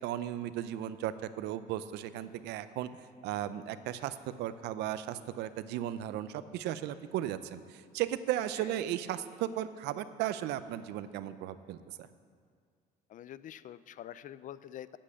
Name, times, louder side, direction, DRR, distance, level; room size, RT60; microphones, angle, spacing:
voice 1, 0.0-2.9 3.2-12.1, right 12 dB, 85° right, 13 dB, 0.5 m, -36 dB
voice 2, 13.1-15.0, left 11 dB, 50° left, 16 dB, 0.4 m, -46 dB
8.7 x 7.6 x 8.3 m, 2.1 s
cardioid pair, 110°, 17 cm